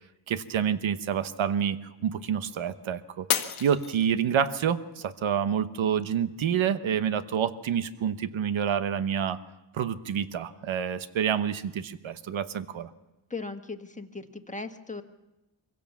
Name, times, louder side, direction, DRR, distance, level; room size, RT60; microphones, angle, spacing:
voice 1, 0.3-3.3 3.6-9.4 9.7-12.9, right 8 dB, 70° right, 12 dB, 1.1 m, -28 dB
Shatter, 3.3-4.6 5.1-5.6 6.1-6.2, left 9 dB, 85° left, 1.5 m, -31 dB
voice 2, 13.3-15.0, left 3 dB, 15° left, 6 dB, 1.5 m, -38 dB
24.0 x 16.5 x 7.2 m, 1.0 s
cardioid pair, 90°, 48 cm